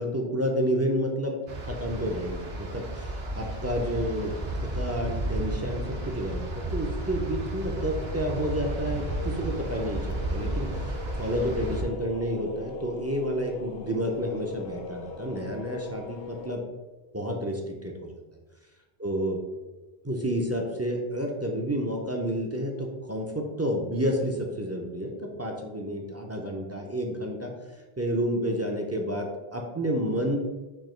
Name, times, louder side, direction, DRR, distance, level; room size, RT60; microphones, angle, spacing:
voice 1, 0.0-1.3 1.6-3.0 3.4-16.6 17.1-18.1 19.0-19.4 20.0-27.5 28.0-30.4, equal, 25° right, 1 dB, 0.3 m, -30 dB
sound 1, 1.5-11.8, right 1 dB, 80° right, 1.0 m, -33 dB
sound 2, 8.0-16.5, left 3 dB, 75° left, 0.8 m, -41 dB
4.5 x 2.7 x 4.4 m, 1.2 s
omnidirectional pair, 1.0 m